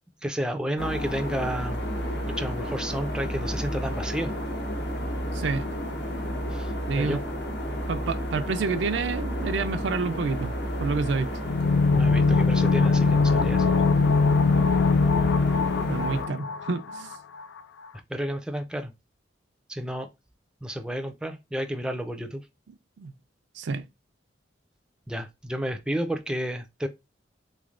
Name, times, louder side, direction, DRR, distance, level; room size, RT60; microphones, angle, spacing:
voice 1, 0.2-1.8 2.3-4.3 6.5-7.2 11.9-13.7 18.1-18.9 19.7-20.1 20.6-22.4 25.1-26.9, equal, 5° right, 0.4 m, -31 dB
sound 1, 0.8-16.2, equal, 65° left, 0.9 m, -31 dB
voice 2, 5.3-5.7 6.9-7.2 7.9-10.5 10.8-11.3 15.9-17.1 23.0-23.1 23.6-23.9, right 4 dB, 75° right, 0.4 m, -28 dB
sound 2, 11.4-17.1 17.4-17.5, left 4 dB, 90° left, 0.3 m, -22 dB
3.4 x 3.2 x 2.4 m
head